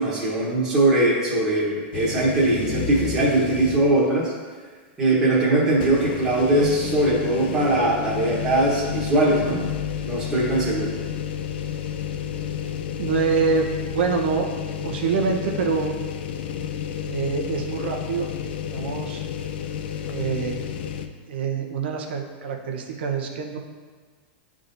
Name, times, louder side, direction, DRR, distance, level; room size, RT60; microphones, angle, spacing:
voice 1, 0.0-4.3 5.0-9.7 10.0-10.9, right 2 dB, 10° right, -9 dB, 1.2 m, -21 dB
sound 1, 1.9-4.1 4.5-4.6 5.7-21.1, left 8 dB, 75° left, 0.5 m, -31 dB
voice 2, 12.8-14.5 14.8-15.9 17.0-18.3 18.7-19.3 20.1-20.6 21.3-23.6, right 5 dB, 80° right, 2 dB, 0.9 m, -25 dB
9.8 x 3.7 x 2.6 m, 1.5 s
supercardioid pair, 155°, 6 cm